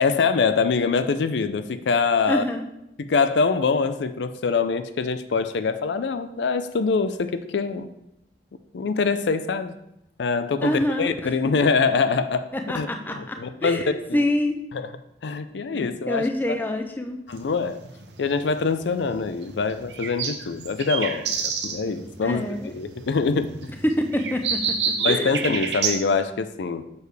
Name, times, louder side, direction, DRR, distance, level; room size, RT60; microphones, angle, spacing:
voice 1, 0.0-2.4 3.0-7.9 8.7-9.7 10.2-12.5 12.7-13.8 14.1-14.3 14.7-14.9 15.2-16.3 17.3-17.8 18.2-23.6 25.0-26.9, left 4 dB, 85° left, 11 dB, 0.4 m, -24 dB
voice 2, 2.3-2.6 10.6-11.2 12.5-14.6 15.7-17.2 22.2-22.7 23.8-25.4, left 1 dB, 10° left, 5 dB, 0.5 m, -26 dB
sound 1, 17.3-26.0, right 6 dB, 85° right, 0.8 m, -29 dB
6.8 x 6.5 x 3.4 m, 0.83 s
head